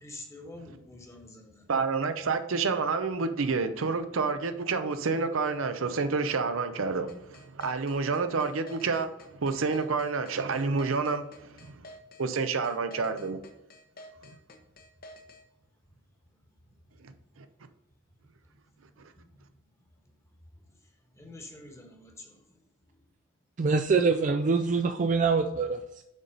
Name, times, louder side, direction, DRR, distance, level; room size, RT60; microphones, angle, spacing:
voice 1, 0.0-1.7 16.9-17.0 18.9-19.0 19.3-19.5 21.1-22.6, left 2 dB, 15° left, 1.2 m, -47 dB
voice 2, 1.7-9.1 9.4-11.2 11.7-11.8 12.2-13.4, right 4 dB, 80° right, 0.6 m, -28 dB
sound 1, 7.1-15.4, left 1 dB, 45° left, 0.9 m, -49 dB
voice 3, 23.6-26.0, right 4 dB, 40° right, 0.3 m, -25 dB
7.1 x 4.1 x 5.2 m
head